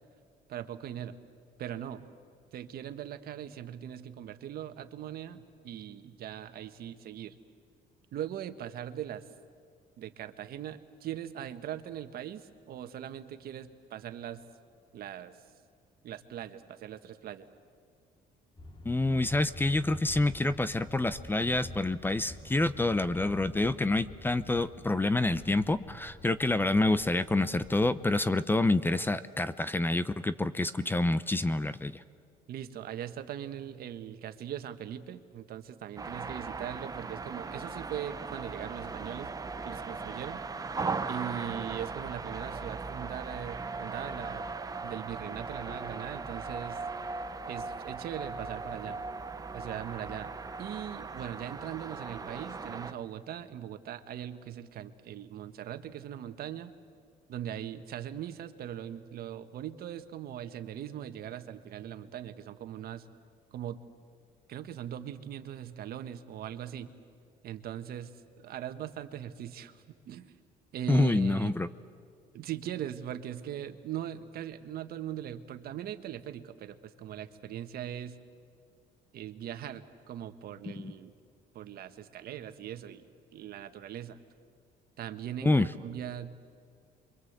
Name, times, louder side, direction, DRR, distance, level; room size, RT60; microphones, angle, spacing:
voice 1, 0.5-1.2 1.6-2.0 2.5-7.4 8.1-9.2 10.0-14.4 14.9-15.4 16.0-17.5 32.5-39.3 39.6-40.4 41.1-44.5 44.8-46.8 47.5-49.0 49.5-50.3 50.6-56.7 57.3-63.1 63.5-63.8 64.5-66.9 67.4-68.1 68.4-70.3 70.7-71.6 72.3-78.2 79.1-81.1 81.5-83.0 83.3-84.2 85.0-86.4, right 10 dB, 65° right, 9 dB, 1.5 m, -40 dB
sound 1, 18.6-28.0, left 1 dB, 30° left, 2.4 m, -48 dB
voice 2, 18.8-32.0 70.9-71.7 80.7-80.9 85.4-85.7, left 2 dB, 10° left, 14 dB, 0.7 m, -27 dB
sound 2, 36.0-52.9, right 4 dB, 20° right, 1.1 m, -38 dB
28.5 x 23.5 x 8.1 m, 2.1 s
cardioid pair, 110°, 17 cm